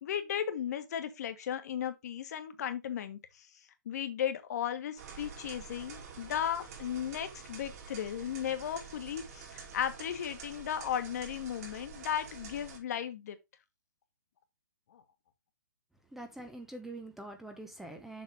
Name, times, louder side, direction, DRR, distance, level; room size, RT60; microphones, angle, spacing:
voice 1, 0.0-3.5 3.8-13.4 14.9-15.0, left 9 dB, 50° left, 1.4 m, -35 dB
sound 1, 5.0-12.8, right 6 dB, 45° right, 3.3 m, -48 dB
voice 2, 16.1-18.2, right 2 dB, 5° right, 0.8 m, -44 dB
7.2 x 5.9 x 3.5 m
hypercardioid pair, 130°, 11 cm